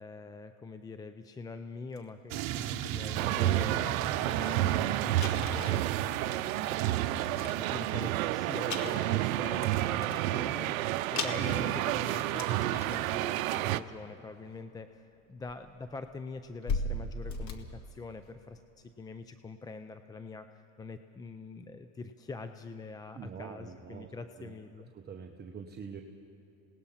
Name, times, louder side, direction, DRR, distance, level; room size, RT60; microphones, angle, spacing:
voice 1, 0.0-24.9, left 3 dB, 10° left, 9 dB, 0.4 m, -44 dB
sound 1, 2.0-2.1 2.5-2.7 3.4-3.5 3.7-3.9 4.3-4.4 4.6-4.7 5.2-6.9 7.3-8.2 8.6-10.3 10.8-10.9 11.2-13.1 13.5-13.8 14.9-15.0 15.5-18.5, left 3 dB, 45° left, 2.0 m, -39 dB
sound 2, 2.3-7.9, right 12 dB, 55° right, 1.2 m, -38 dB
sound 3, 3.1-13.8, right 14 dB, 85° right, 0.7 m, -30 dB
voice 2, 23.1-24.1 24.4-24.5 24.9-26.0, right 6 dB, 25° right, 3 dB, 1.1 m, -44 dB
27.5 x 19.0 x 5.7 m, 2.9 s
supercardioid pair, 115°, 40 cm